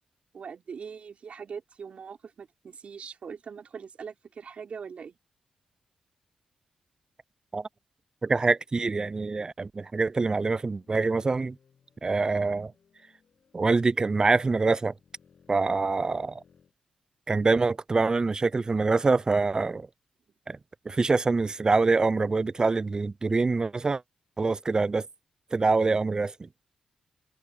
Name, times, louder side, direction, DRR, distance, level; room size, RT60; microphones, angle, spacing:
voice 1, 0.3-5.2, right 6 dB, 60° right, 4.6 m, -42 dB
voice 2, 8.2-11.6 12.0-12.7 13.5-14.9 15.5-16.4 17.3-19.9 20.5-20.6 20.9-24.0 24.4-25.1 25.5-26.5, right 3 dB, 30° right, 0.3 m, -25 dB
sound 1, 10.5-16.7, left 6 dB, 60° left, 6.7 m, -63 dB
supercardioid pair, 50°, 2 cm